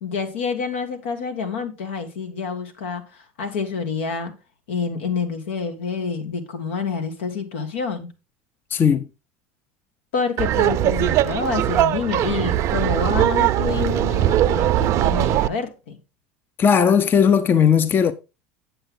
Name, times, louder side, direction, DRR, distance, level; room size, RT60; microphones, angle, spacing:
voice 1, 0.0-3.0 3.4-4.3 4.7-8.1 10.1-16.0, left 5 dB, 85° left, 2.0 m, -27 dB
voice 2, 8.7-9.0 16.6-18.1, left 7 dB, 35° left, 0.6 m, -17 dB
Laughter, 10.4-15.5, right 13 dB, 50° right, 0.5 m, -20 dB
8.0 x 7.9 x 3.8 m
supercardioid pair, 100°, 6 cm